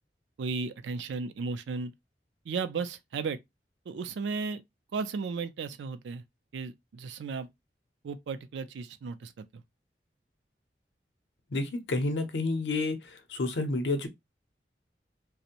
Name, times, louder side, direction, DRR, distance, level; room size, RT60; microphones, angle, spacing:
voice 1, 0.4-1.9 2.5-3.4 3.9-4.6 4.9-6.2 6.5-7.5 8.0-9.4, right 4 dB, 85° right, 0.4 m, -34 dB
voice 2, 11.5-14.1, left 2 dB, 80° left, 0.6 m, -30 dB
2.5 x 2.0 x 2.7 m
head